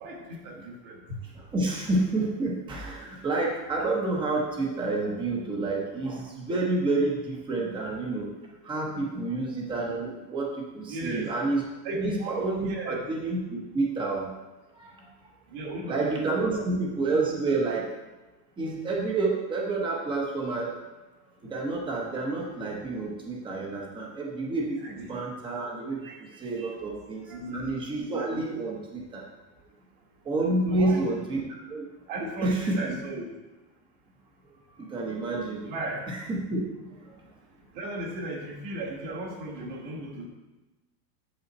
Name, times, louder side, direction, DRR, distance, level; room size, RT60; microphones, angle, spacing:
voice 1, 0.0-1.0 10.9-11.3 11.8-13.0 15.5-16.6 24.8-25.2 26.0-26.2 26.7-27.0 27.3-27.8 30.6-31.1 32.1-33.3 35.6-36.0 37.7-40.3, right 1 dB, 40° right, 1 dB, 1.5 m, -36 dB
voice 2, 1.1-14.3 14.8-15.1 15.9-17.9 18.6-20.8 21.4-29.2 30.2-31.4 31.7-31.8 32.4-32.8 34.7-35.7 36.1-37.1, right 2 dB, 10° right, -1 dB, 0.9 m, -29 dB
8.1 x 7.1 x 4.1 m, 1.1 s
supercardioid pair, 175°, 49 cm